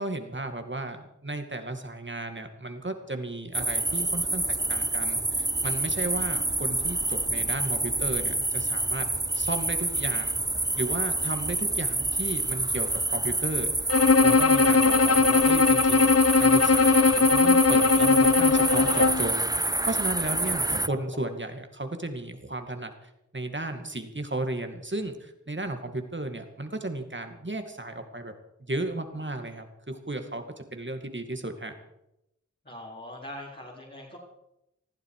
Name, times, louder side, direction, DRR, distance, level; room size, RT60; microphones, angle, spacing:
voice 1, 0.0-9.1 9.3-10.4 10.8-13.7 14.2-28.3 28.6-30.4 30.7-31.7, right 2 dB, 40° right, 6 dB, 2.4 m, -34 dB
sound 1, 3.5-20.9, right 2 dB, 15° right, 0.5 m, -28 dB
Bowed string instrument, 13.9-19.3, left 4 dB, 50° left, 0.7 m, -20 dB
voice 2, 32.6-34.2, left 1 dB, 30° left, -5 dB, 4.5 m, -42 dB
20.0 x 14.5 x 4.9 m, 0.84 s
wide cardioid pair, 50°, 31 cm